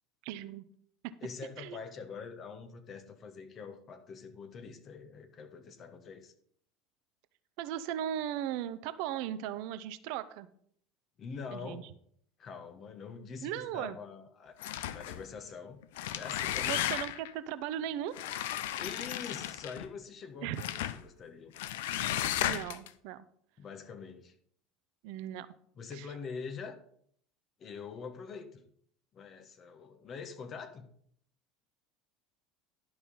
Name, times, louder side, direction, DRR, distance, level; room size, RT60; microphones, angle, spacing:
voice 1, 0.2-0.7 1.0-1.1 1.6-1.8 7.6-10.5 11.5-11.8 13.4-14.0 16.6-18.2 20.4-20.6 22.0-23.2 25.0-25.5 26.0-26.1, right 11 dB, 60° right, 14 dB, 0.6 m, -37 dB
voice 2, 1.2-6.3 11.2-11.9 12.4-15.8 16.1-16.8 18.8-21.5 23.6-24.3 25.8-26.8 27.6-28.6 29.1-30.9, left 5 dB, 40° left, 8 dB, 1.3 m, -44 dB
sound 1, 14.6-15.2 15.8-17.3 18.1-19.9 20.6-21.0 21.6-22.9, left 12 dB, 65° left, 0.5 m, -34 dB
11.5 x 5.6 x 5.5 m, 0.63 s
figure-of-eight pair, 70°, 0 cm